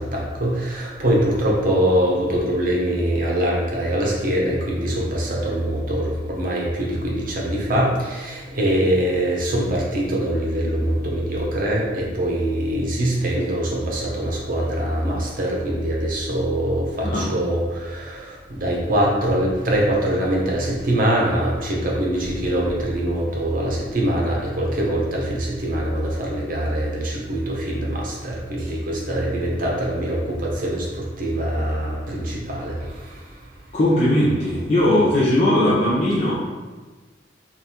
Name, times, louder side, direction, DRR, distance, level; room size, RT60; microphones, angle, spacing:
voice 1, 0.0-33.2, right 1 dB, 50° right, -3 dB, 0.9 m, -23 dB
voice 2, 33.7-36.3, left 1 dB, 35° left, -8 dB, 0.6 m, -18 dB
5.3 x 2.5 x 2.9 m, 1.3 s
head